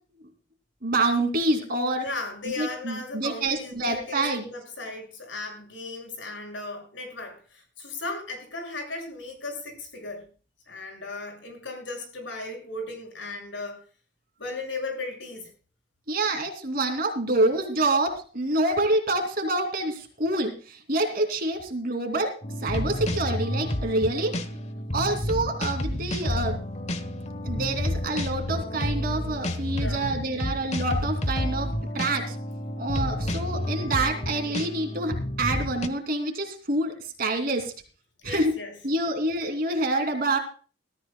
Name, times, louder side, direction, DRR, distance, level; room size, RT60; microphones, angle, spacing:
voice 1, 0.8-2.0 2.6-4.4 16.1-19.9 20.2-20.5 20.9-22.3 22.6-24.3 24.9-26.6 27.4-32.3 32.8-35.1 35.4-37.7 38.2-38.5 38.8-40.4, right 2 dB, 50° right, 5 dB, 3.0 m, -26 dB
voice 2, 1.9-10.3 10.7-13.8 14.4-15.5 29.7-30.1 38.2-38.8, left 2 dB, 80° left, 2 dB, 6.7 m, -36 dB
sound 1, 22.4-35.9, left 1 dB, 35° left, 1.2 m, -30 dB
20.5 x 14.0 x 2.3 m, 0.38 s
head